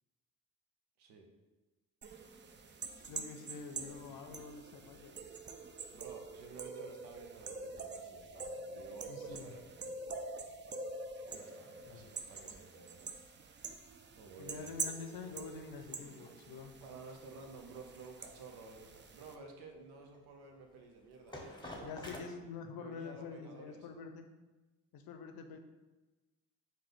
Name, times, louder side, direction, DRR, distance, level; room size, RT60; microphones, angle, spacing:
sound 1, 2.0-19.4, right 4 dB, 30° right, 0.4 m, -46 dB
voice 1, 3.0-5.2 9.1-9.6 11.9-12.1 14.4-16.7 21.8-24.3 24.9-25.6, left 5 dB, 65° left, 6 dB, 0.6 m, -47 dB
voice 2, 5.9-9.9 11.2-13.1 14.2-14.8 16.8-22.3 22.7-23.9, right 3 dB, 80° right, 3 dB, 0.8 m, -53 dB
sound 2, 15.1-22.2, left 1 dB, 10° left, 0.9 m, -52 dB
4.9 x 2.2 x 3.8 m, 1.2 s
supercardioid pair, 55°, 39 cm